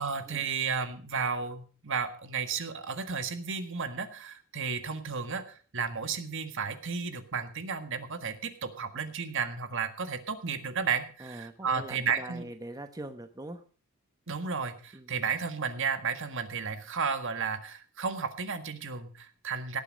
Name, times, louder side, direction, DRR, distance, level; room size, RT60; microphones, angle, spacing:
voice 1, 0.0-12.4 14.3-19.8, right 5 dB, 60° right, 9 dB, 1.7 m, -33 dB
voice 2, 11.2-13.6 14.9-15.2, right 1 dB, 15° right, 7 dB, 0.9 m, -42 dB
18.0 x 8.3 x 5.2 m, 0.40 s
head